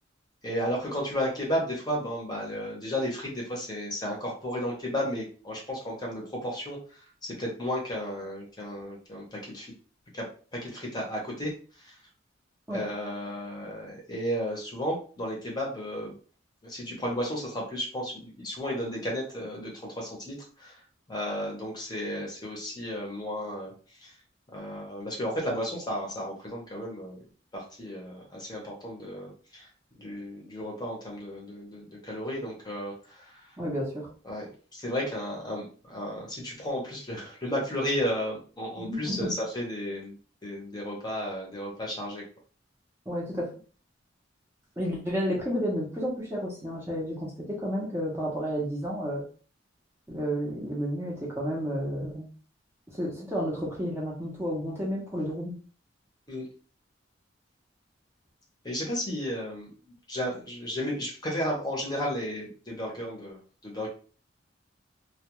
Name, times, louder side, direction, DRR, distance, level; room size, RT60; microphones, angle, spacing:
voice 1, 0.4-9.7 10.1-10.2 10.5-11.5 11.8-11.9 12.7-16.1 16.6-20.8 21.1-23.7 24.0-24.1 24.5-27.2 27.5-29.7 30.0-33.5 34.2-40.2 40.4-42.2 56.3-56.5 58.6-63.9, equal, 20° left, -2 dB, 0.8 m, -33 dB
voice 2, 33.6-34.1 38.8-39.3 43.1-43.5 44.8-49.2 50.1-52.3 52.9-55.6, equal, 15° right, -4 dB, 0.7 m, -31 dB
2.3 x 2.2 x 2.9 m, 0.39 s
head